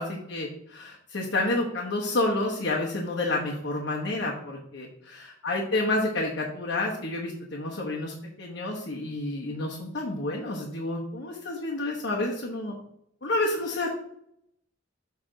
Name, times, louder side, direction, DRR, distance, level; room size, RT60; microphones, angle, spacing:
voice 1, 0.0-12.7 13.2-13.9, left 2 dB, 65° left, -3 dB, 1.1 m, -29 dB
7.5 x 3.4 x 4.9 m, 0.74 s
head